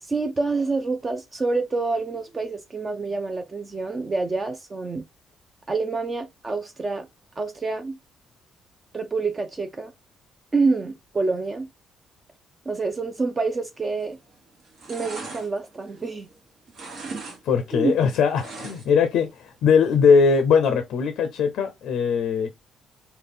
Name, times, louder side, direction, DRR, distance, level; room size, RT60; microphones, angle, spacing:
voice 1, 0.0-5.0 5.7-7.1 7.4-8.0 8.9-9.9 10.5-11.7 12.7-14.2 14.9-16.3 17.7-18.0, right 3 dB, 30° right, 0.4 m, -27 dB
sound 1, 13.9-14.3 14.6-16.4 16.7-17.4 17.7-19.1 19.4-19.5, right 3 dB, 70° right, 1.2 m, -38 dB
voice 2, 17.4-22.5, left 6 dB, 80° left, 0.4 m, -20 dB
3.8 x 2.2 x 3.3 m
cardioid pair, 90°, 0 cm